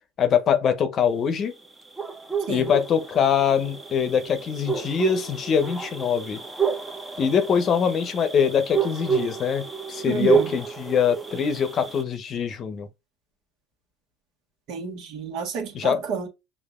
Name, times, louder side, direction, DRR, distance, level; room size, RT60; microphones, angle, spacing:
voice 1, 0.2-1.5 2.5-6.4 7.2-12.9 15.7-16.0, left 7 dB, 40° left, 0.8 m, -23 dB
sound 1, 1.6-12.0, right 6 dB, 10° right, 0.9 m, -29 dB
voice 2, 10.0-10.5 14.7-16.3, right 6 dB, 60° right, 1.5 m, -30 dB
6.6 x 2.6 x 2.4 m
hypercardioid pair, 85°, 0 cm